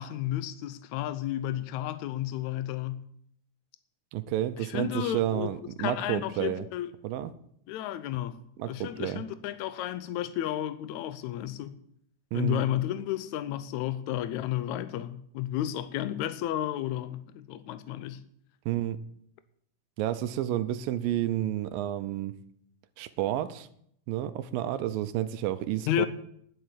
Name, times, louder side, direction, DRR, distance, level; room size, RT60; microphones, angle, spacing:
voice 1, 0.0-3.0 4.6-5.5 5.8-6.9 7.7-8.4 8.7-11.8 12.3-18.2 25.9-26.1, left 12 dB, 85° left, 1.6 m, -32 dB
voice 2, 4.1-6.6 7.0-7.3 8.6-9.2 12.3-12.6 18.7-19.0 20.0-22.4 23.0-23.7 24.1-26.1, right 13 dB, 80° right, 2.4 m, -30 dB
10.5 x 8.1 x 9.2 m
omnidirectional pair, 4.2 m